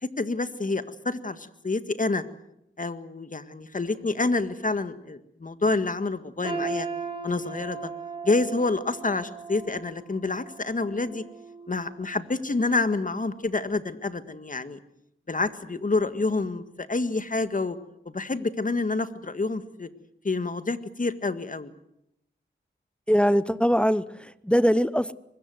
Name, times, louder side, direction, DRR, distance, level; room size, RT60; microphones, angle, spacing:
voice 1, 0.0-2.2 2.8-6.9 7.2-7.9 8.2-11.2 11.7-14.8 15.3-17.8 18.1-19.9 20.2-21.7, left 3 dB, 45° left, 11 dB, 1.8 m, -28 dB
sound 1, 6.4-12.4 12.8-13.0 13.8-13.9, right 4 dB, 25° right, 5.6 m, -37 dB
voice 2, 23.1-25.1, equal, 5° left, 16 dB, 0.8 m, -22 dB
24.0 x 21.0 x 7.9 m, 0.80 s
wide cardioid pair, 60°, 19 cm